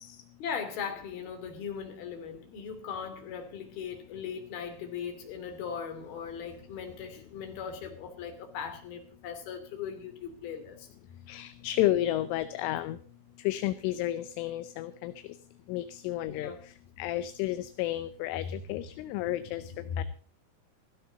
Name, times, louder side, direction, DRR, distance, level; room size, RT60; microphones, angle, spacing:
voice 1, 0.4-10.9 16.3-16.6 18.4-20.0, left 7 dB, 50° left, 5 dB, 4.4 m, -39 dB
voice 2, 11.3-13.0 13.5-15.1 15.7-16.5 17.0-18.4 18.7-19.6 20.0-20.1, left 14 dB, 80° left, 11 dB, 3.1 m, -31 dB
16.0 x 15.5 x 4.0 m, 0.42 s
omnidirectional pair, 5.9 m